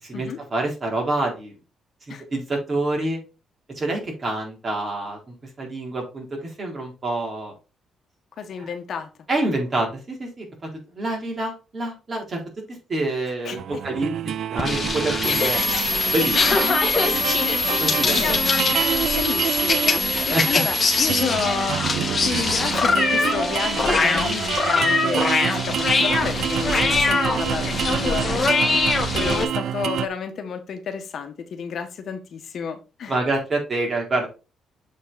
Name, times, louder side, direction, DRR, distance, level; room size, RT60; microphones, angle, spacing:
voice 1, 0.0-1.5 2.1-3.2 3.8-7.5 9.3-10.5 10.9-12.4 12.9-13.6 13.8-14.1 14.5-15.8 16.0-16.3 17.8-18.2 20.1-20.6 33.1-34.3, right 2 dB, 35° right, 0 dB, 3.8 m, -27 dB
voice 2, 8.4-9.1 13.4-13.8 16.5-16.8 17.1-17.4 17.7-18.4 19.1-33.2, left 7 dB, 60° left, 7 dB, 1.2 m, -31 dB
sound 1, 13.6-30.1, right 10 dB, 70° right, 0.4 m, -27 dB
sound 2, 14.6-29.4, left 4 dB, 35° left, 1.6 m, -23 dB
sound 3, 15.2-21.2, left 2 dB, 10° left, 0.8 m, -26 dB
7.3 x 4.6 x 4.1 m, 0.31 s
cardioid pair, 90°, 0 cm